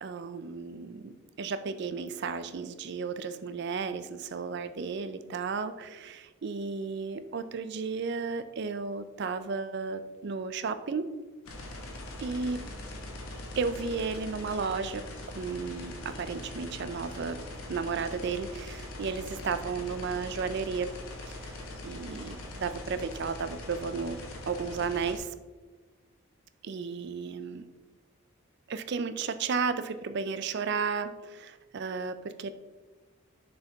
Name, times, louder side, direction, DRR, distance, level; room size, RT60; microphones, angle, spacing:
voice 1, 0.0-11.1 12.2-12.6 13.6-15.1 15.4-17.4 17.7-20.9 21.3-24.2 24.5-25.3 26.6-27.7 28.7-32.5, right 5 dB, 50° right, 12 dB, 0.4 m, -33 dB
sound 1, 11.4-25.2, left 1 dB, 75° left, 1.1 m, -42 dB
6.6 x 4.6 x 3.4 m, 1.3 s
head